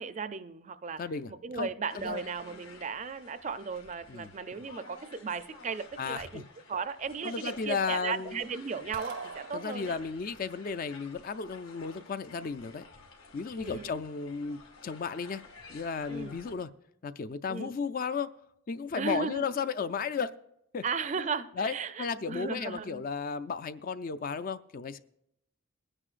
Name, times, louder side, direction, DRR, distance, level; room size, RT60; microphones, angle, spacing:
voice 1, 0.0-1.0 1.3-10.0 13.6-13.9 16.1-16.4 17.5-17.7 18.9-19.4 20.8-23.0, right 5 dB, 35° right, 0.4 m, -36 dB
voice 2, 1.0-1.7 1.9-2.2 4.1-4.3 6.0-6.4 7.2-8.4 9.5-12.8 13.3-15.4 15.7-16.7 17.0-18.3 18.7-20.3 20.7-20.8 21.6-25.0, left 5 dB, 40° left, 0.4 m, -34 dB
sound 1, 1.9-16.5, left 3 dB, 75° left, 2.2 m, -52 dB
sound 2, 8.9-10.2, right 4 dB, 85° right, 0.8 m, -42 dB
21.0 x 9.8 x 2.5 m
head